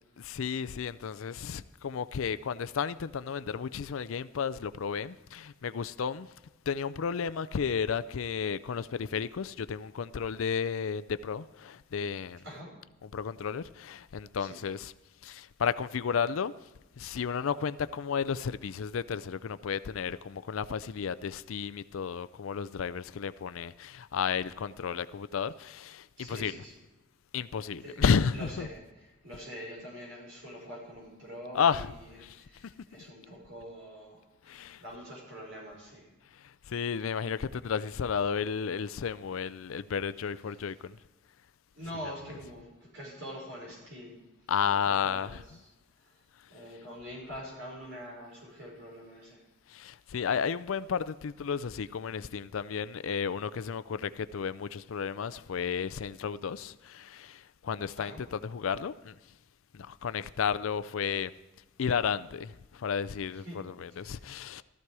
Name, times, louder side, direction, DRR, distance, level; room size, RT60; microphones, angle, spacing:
voice 1, 0.2-6.3 6.7-12.4 13.1-14.9 15.2-16.5 17.0-26.5 27.3-28.7 31.5-31.9 32.2-32.7 34.4-34.8 36.3-41.0 44.5-45.6 49.7-59.2 59.7-61.3 61.8-64.6, left 6 dB, 85° left, 0.4 m, -32 dB
voice 2, 26.2-26.7 27.7-28.1 28.3-36.1 40.5-40.7 41.7-44.2 44.6-45.4 46.0-46.2 46.5-49.4 58.0-58.2 63.3-63.6 64.0-64.2, equal, 65° right, 5.3 m, -45 dB
15.0 x 13.5 x 4.8 m
head